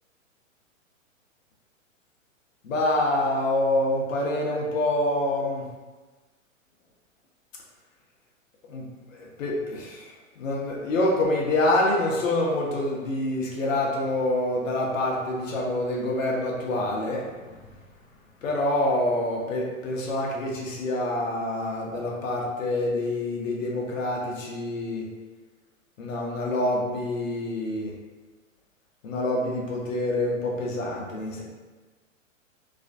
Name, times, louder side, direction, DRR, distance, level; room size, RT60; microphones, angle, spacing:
voice 1, 2.6-5.6 8.7-17.6 18.4-25.1 26.0-27.9 29.0-31.4, left 1 dB, 75° left, -3 dB, 0.7 m, -26 dB
2.4 x 2.0 x 2.5 m, 1.3 s
hypercardioid pair, 130°, 39 cm